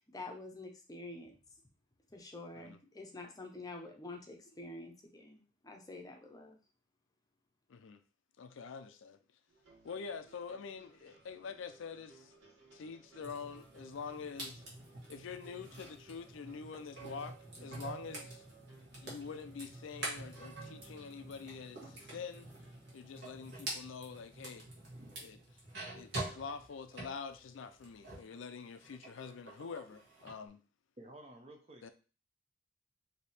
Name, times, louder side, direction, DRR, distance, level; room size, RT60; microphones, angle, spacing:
voice 1, 0.0-1.3 2.1-6.6, left 2 dB, 20° left, 0.6 m, -48 dB
voice 2, 8.4-9.2 9.8-12.3 12.7-14.7 15.1-18.4 19.0-22.5 22.9-24.7 25.2-25.4 25.9-30.6 31.8-31.9, left 5 dB, 70° left, 0.4 m, -46 dB
sound 1, 9.5-23.4, right 3 dB, 75° right, 1.7 m, -63 dB
sound 2, 13.2-28.4 28.7-30.4, right 2 dB, 55° right, 1.4 m, -47 dB
voice 3, 31.0-31.9, right 1 dB, 30° right, 0.7 m, -53 dB
3.3 x 2.7 x 4.2 m
head